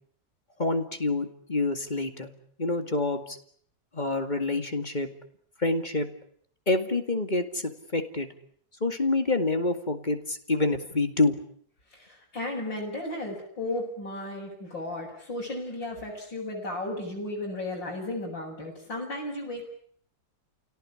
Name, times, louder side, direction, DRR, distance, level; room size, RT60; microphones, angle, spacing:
voice 1, 0.6-2.3 2.6-3.4 3.9-5.1 5.6-6.1 6.7-8.3 8.8-11.4, left 2 dB, 25° left, 7 dB, 2.2 m, -27 dB
voice 2, 11.9-19.6, left 1 dB, 80° left, -5 dB, 7.4 m, -34 dB
30.0 x 17.5 x 10.0 m, 0.64 s
omnidirectional pair, 2.0 m